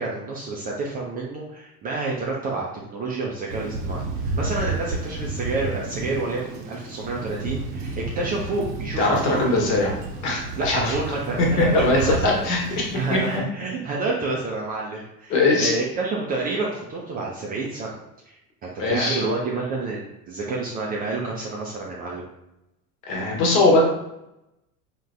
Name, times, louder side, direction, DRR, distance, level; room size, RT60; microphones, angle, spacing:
voice 1, 0.0-9.7 10.6-18.0 18.3-22.3, right 3 dB, 20° right, -3 dB, 0.4 m, -29 dB
Thunder, 3.5-13.4, right 2 dB, 50° right, 0.7 m, -31 dB
voice 2, 9.0-9.9 10.2-10.9 11.6-12.6 12.9-13.4 15.3-15.7 18.8-19.2 23.0-23.8, left 2 dB, 55° left, -1 dB, 1.1 m, -21 dB
4.1 x 2.2 x 2.4 m, 0.87 s
figure-of-eight pair, 75°, 46 cm